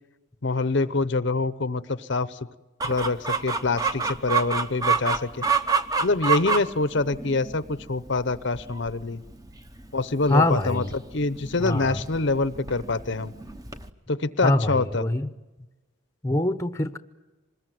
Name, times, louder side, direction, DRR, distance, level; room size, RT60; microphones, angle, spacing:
voice 1, 0.4-2.4 2.9-5.3 6.0-9.2 9.9-13.3 14.1-15.0, left 3 dB, 55° left, 14 dB, 0.8 m, -25 dB
Chicken rooster, 2.8-13.9, right 5 dB, 15° right, 1.0 m, -29 dB
voice 2, 10.3-10.9 11.6-12.1 14.4-15.3 16.2-17.0, left 1 dB, 15° left, 9 dB, 0.9 m, -24 dB
26.0 x 21.0 x 9.2 m, 1.1 s
head